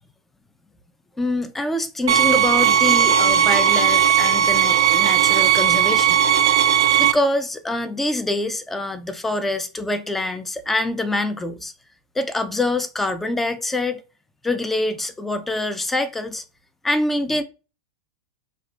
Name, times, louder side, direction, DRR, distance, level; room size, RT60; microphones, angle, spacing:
voice 1, 1.2-6.2 7.0-11.7 12.2-14.0 14.4-16.4 16.8-17.4, left 2 dB, 10° left, 0.5 m, -25 dB
sound 1, 2.1-7.1, right 9 dB, 70° right, 0.4 m, -17 dB
6.0 x 2.4 x 2.4 m
hypercardioid pair, 95°, 2 cm